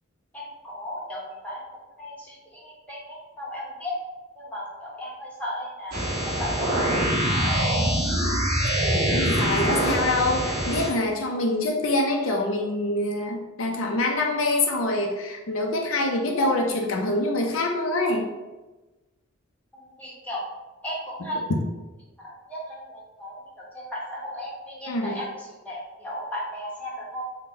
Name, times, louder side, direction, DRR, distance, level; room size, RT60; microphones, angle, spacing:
voice 1, 0.3-1.6 2.0-3.9 4.4-7.1 7.4-7.8 19.7-20.4 20.8-21.4 22.2-27.2, equal, 5° left, -6 dB, 0.9 m, -35 dB
sound 1, 5.9-10.9, equal, 45° right, 1.1 m, -24 dB
voice 2, 9.1-18.3 24.9-25.2, left 2 dB, 75° left, 1 dB, 0.5 m, -25 dB
3.9 x 2.1 x 3.7 m, 1.1 s
head